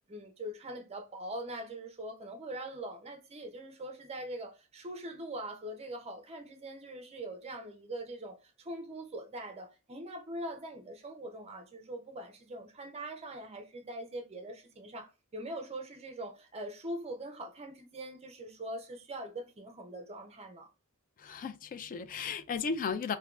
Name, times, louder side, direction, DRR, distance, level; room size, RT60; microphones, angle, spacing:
voice 1, 0.1-20.7, right 1 dB, 30° right, 0.5 m, -42 dB
voice 2, 21.2-23.2, left 5 dB, 40° left, 0.3 m, -35 dB
3.4 x 2.2 x 2.3 m
head